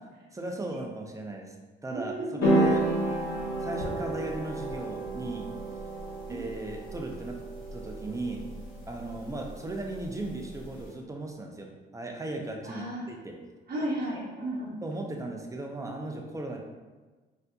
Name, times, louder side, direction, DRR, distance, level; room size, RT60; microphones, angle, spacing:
voice 1, 0.3-1.5 1.8-2.9 3.6-5.5 6.3-7.4 7.7-8.4 8.9-13.3 14.8-16.6, right 2 dB, 15° right, 1 dB, 0.5 m, -37 dB
voice 2, 1.9-2.6 6.3-6.4 12.6-13.1 13.7-14.8, right 1 dB, 50° right, -5 dB, 0.9 m, -34 dB
sound 1, 2.4-10.8, right 1 dB, 85° left, 1.0 m, -31 dB
4.1 x 2.7 x 2.3 m, 1.3 s
cardioid pair, 90°, 20 cm